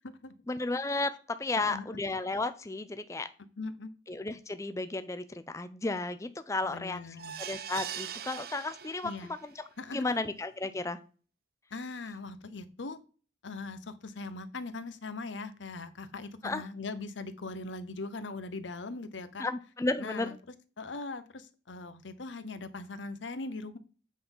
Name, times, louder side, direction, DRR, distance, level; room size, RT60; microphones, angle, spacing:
voice 1, 0.5-3.3 4.1-7.0 7.4-9.6 9.9-11.0 16.4-16.6 19.4-20.3, left 2 dB, 15° left, 11 dB, 0.4 m, -33 dB
voice 2, 1.6-2.0 3.6-3.9 6.6-7.3 9.0-9.3 9.8-10.2 11.7-13.0 13.4-19.4 20.0-20.3 20.8-23.8, left 3 dB, 85° left, 12 dB, 0.8 m, -40 dB
sound 1, 7.2-9.4 9.9-10.0 10.4-10.5, right 9 dB, 55° right, 0.6 m, -41 dB
8.4 x 3.9 x 5.3 m, 0.37 s
head